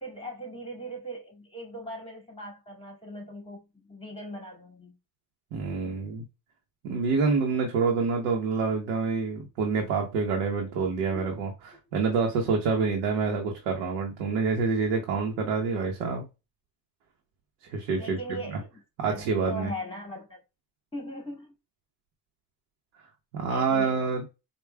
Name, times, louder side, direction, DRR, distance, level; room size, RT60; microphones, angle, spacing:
voice 1, 0.0-5.0 18.0-20.4 20.9-21.5 23.5-24.1, equal, 10° left, 2.1 m, -39 dB
voice 2, 5.5-6.2 6.8-16.3 17.6-18.2 19.0-19.7 23.3-24.2, right 4 dB, 80° right, 1.0 m, -27 dB
4.7 x 2.4 x 2.2 m
supercardioid pair, 75°, 48 cm